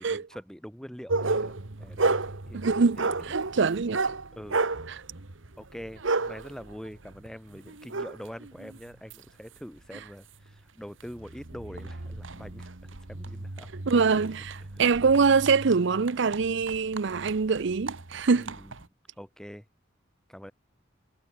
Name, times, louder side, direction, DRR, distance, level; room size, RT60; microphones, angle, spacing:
voice 1, 0.0-2.6 3.0-3.3 4.4-4.6 5.6-12.7 13.1-13.7 15.7-15.8 18.3-18.7 19.2-19.7 20.3-20.5, equal, 5° left, 2.6 m, -44 dB
sound 1, 1.1-9.2 9.8-9.9 10.5-10.6 11.0-18.8, right 3 dB, 80° right, 1.6 m, -33 dB
voice 2, 2.5-4.0 4.9-5.0 13.9-18.5, right 5 dB, 65° right, 0.6 m, -24 dB
head